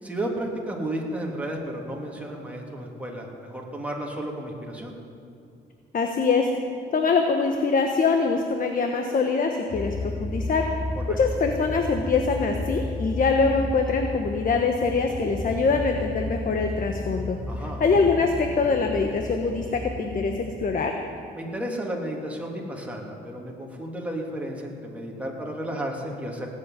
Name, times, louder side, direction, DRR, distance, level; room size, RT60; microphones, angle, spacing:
voice 1, 0.0-5.0 11.1-11.2 17.5-17.8 21.3-26.5, right 1 dB, 5° right, -2 dB, 2.9 m, -33 dB
voice 2, 5.9-6.5 6.9-10.7 11.1-17.4 17.8-20.9, left 4 dB, 45° left, 4 dB, 1.2 m, -23 dB
sound 1, 9.7-20.5, left 1 dB, 75° left, 3.2 m, -33 dB
17.5 x 7.9 x 9.4 m, 2.5 s
cardioid pair, 90°, 20 cm